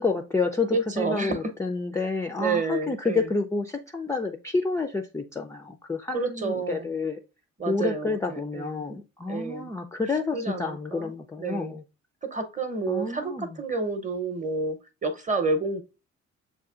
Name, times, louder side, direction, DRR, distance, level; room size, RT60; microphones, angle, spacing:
voice 1, 0.0-7.2 7.7-11.8 12.9-13.6, left 3 dB, 10° left, 0.4 m, -29 dB
voice 2, 0.7-1.4 2.0-2.1 2.4-3.3 6.1-6.9 7.6-8.8 9.3-9.7 10.3-11.1 11.4-11.8 12.2-15.8, right 3 dB, 20° right, 0.8 m, -30 dB
7.1 x 2.4 x 2.4 m
figure-of-eight pair, 40°, 36 cm